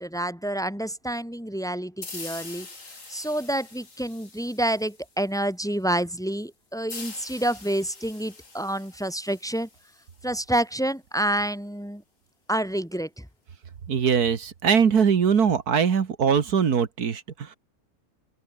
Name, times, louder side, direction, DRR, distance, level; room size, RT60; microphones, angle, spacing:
voice 1, 0.0-2.7 3.1-9.7 10.2-12.0 12.5-13.3, right 1 dB, ahead, 2.6 m, -28 dB
sound 1, 2.0-5.4 6.9-10.4, left 3 dB, 55° left, 3.7 m, -44 dB
voice 2, 13.9-17.6, right 7 dB, 80° right, 2.1 m, -22 dB
open air
omnidirectional pair, 1.6 m